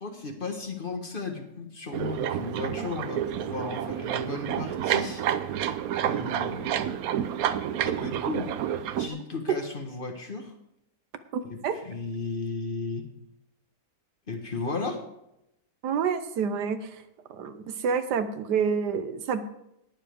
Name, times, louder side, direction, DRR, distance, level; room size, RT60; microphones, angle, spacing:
voice 1, 0.0-5.2 6.0-6.9 7.8-8.5 9.0-10.5 11.4-13.1 14.3-15.1, left 3 dB, 35° left, 4 dB, 1.4 m, -35 dB
sound 1, 1.9-9.1, right 10 dB, 70° right, 1.0 m, -29 dB
voice 2, 11.3-11.7 15.8-16.8 17.4-19.4, right 6 dB, 85° right, 10 dB, 1.5 m, -28 dB
19.5 x 7.3 x 3.5 m, 0.83 s
omnidirectional pair, 1.7 m